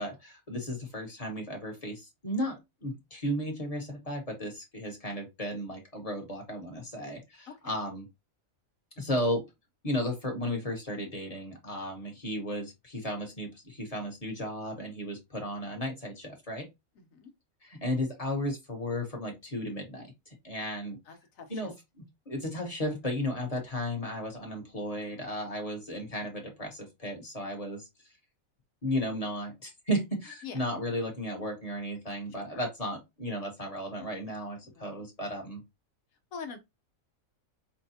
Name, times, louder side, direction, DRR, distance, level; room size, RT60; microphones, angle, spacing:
voice 1, 0.0-8.1 9.0-9.5 9.8-16.7 17.6-21.0 21.5-21.7 22.3-27.9 28.8-35.6, equal, 30° left, 1.2 m, -34 dB
voice 2, 16.9-17.3 21.0-21.7 30.4-30.6 32.3-32.6 34.7-35.1 36.3-36.6, left 6 dB, 75° left, 1.3 m, -45 dB
5.7 x 2.3 x 2.7 m
omnidirectional pair, 1.4 m